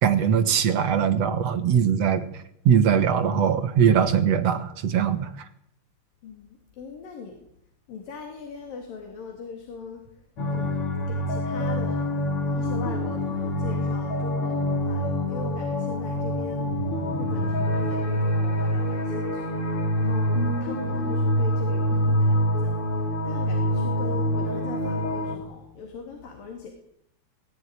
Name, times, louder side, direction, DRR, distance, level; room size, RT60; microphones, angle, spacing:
voice 1, 0.0-2.3 2.7-5.3, right 8 dB, 55° right, 9 dB, 2.3 m, -21 dB
voice 2, 6.2-7.4 7.9-10.0 10.5-12.1 12.5-16.7 17.2-19.5 20.0-22.8 23.2-26.7, left 5 dB, 90° left, 3 dB, 4.8 m, -40 dB
sound 1, 10.4-25.4, equal, 45° left, 3.5 m, -25 dB
19.0 x 18.5 x 9.9 m, 0.76 s
omnidirectional pair, 3.9 m